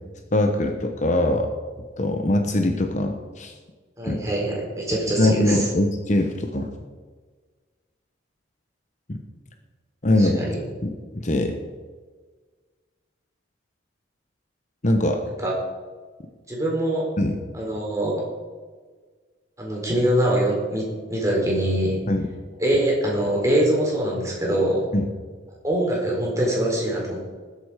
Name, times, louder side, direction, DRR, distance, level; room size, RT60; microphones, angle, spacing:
voice 1, 0.3-1.5 2.0-3.5 4.0-4.2 5.2-6.7 9.1-9.2 10.0-10.4 10.8-11.6 14.8-15.2 17.2-17.4 22.1-22.3 24.9-25.1, left 1 dB, 40° left, 4 dB, 1.0 m, -22 dB
voice 2, 4.0-5.7 10.2-10.6 15.4-15.5 16.5-17.0 17.5-18.2 19.6-22.0 22.6-24.9 25.6-27.3, right 1 dB, 15° right, -3 dB, 4.2 m, -23 dB
20.0 x 8.1 x 5.0 m, 1.5 s
head